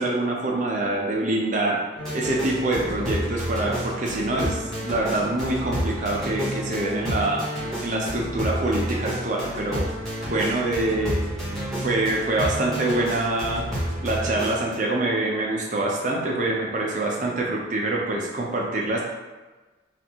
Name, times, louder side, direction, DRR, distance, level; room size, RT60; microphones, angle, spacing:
voice 1, 0.0-1.8 2.1-4.6 4.9-7.4 7.8-9.9 10.3-11.2 11.8-13.6 14.0-19.0, right 2 dB, 40° right, -2 dB, 0.6 m, -25 dB
sound 1, 2.0-14.7, equal, ahead, 0.9 m, -30 dB
3.4 x 2.5 x 2.9 m, 1.2 s
head